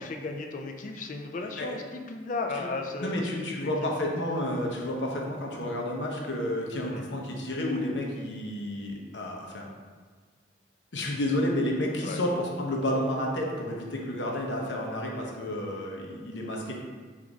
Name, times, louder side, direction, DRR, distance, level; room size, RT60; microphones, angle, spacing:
voice 1, 0.0-3.3 3.6-3.7 6.9-7.2 12.0-12.2, left 3 dB, 45° left, 4 dB, 0.4 m, -35 dB
voice 2, 3.0-9.7 10.9-16.7, left 1 dB, 75° left, -1 dB, 0.7 m, -30 dB
4.6 x 2.5 x 3.9 m, 1.5 s
head